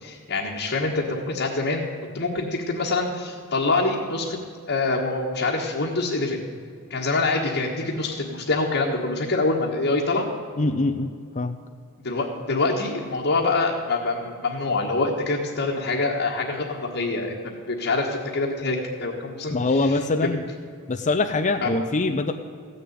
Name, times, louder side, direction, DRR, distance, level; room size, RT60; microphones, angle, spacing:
voice 1, 0.0-1.8 2.1-4.4 4.7-6.4 6.9-10.3 12.0-20.0 21.6-21.7, left 3 dB, 55° left, -3 dB, 1.5 m, -25 dB
voice 2, 10.6-11.5 19.5-20.4 20.9-22.3, left 2 dB, 35° left, 6 dB, 0.6 m, -23 dB
15.5 x 6.9 x 9.4 m, 2.2 s
head